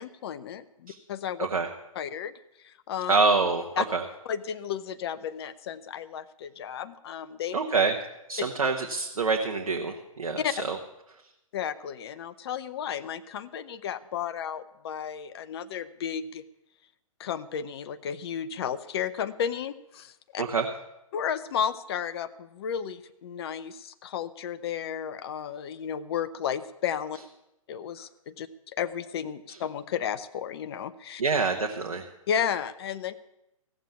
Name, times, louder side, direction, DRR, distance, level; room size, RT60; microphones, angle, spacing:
voice 1, 0.0-1.5 2.0-2.3 2.6-3.1 3.8-3.9 4.2-7.5 10.4-10.5 11.5-16.4 17.2-20.4 21.1-27.2 27.7-31.2 32.3-33.1, left 8 dB, 45° left, 13 dB, 0.8 m, -33 dB
voice 2, 3.1-4.0 7.5-7.9 8.3-10.8 20.4-20.7 29.5-29.6 31.2-32.1, right 4 dB, 70° right, 3 dB, 1.2 m, -26 dB
15.0 x 7.5 x 8.3 m, 0.88 s
figure-of-eight pair, 125°, 18 cm